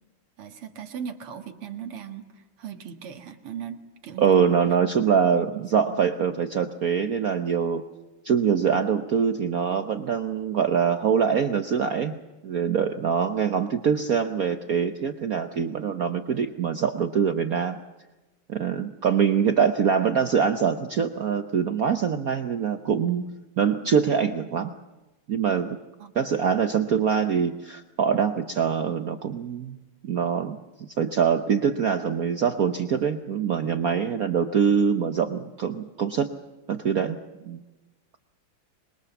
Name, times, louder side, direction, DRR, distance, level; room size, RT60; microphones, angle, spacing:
voice 1, 0.4-4.9 5.2-5.6 5.9-6.1 26.0-26.1, right 8 dB, 80° right, 5 dB, 2.6 m, -38 dB
voice 2, 4.2-7.8 8.2-12.1 12.4-17.8 18.5-23.2 23.6-24.7 25.3-25.8 26.1-29.8 30.0-30.6 31.0-36.3 36.7-37.2 37.4-37.6, right 7 dB, 55° right, 8 dB, 1.1 m, -24 dB
26.0 x 22.0 x 7.2 m, 1.1 s
omnidirectional pair, 2.4 m